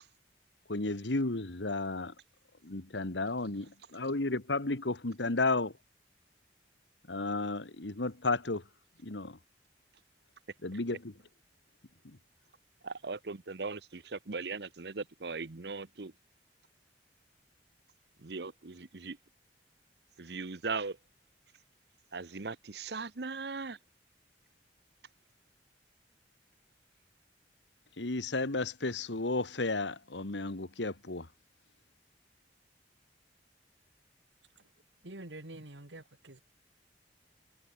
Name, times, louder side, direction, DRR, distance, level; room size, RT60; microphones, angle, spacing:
voice 1, 0.7-2.1 2.6-5.7 7.1-8.6 9.0-9.4 10.6-11.1 12.0-12.2 28.0-31.3, left 2 dB, 85° left, 1.7 m, -33 dB
voice 2, 12.8-16.1 18.2-19.2 20.2-21.0 22.1-23.8, right 4 dB, 65° right, 0.9 m, -39 dB
voice 3, 35.0-36.4, right 1 dB, 85° right, 2.7 m, -47 dB
head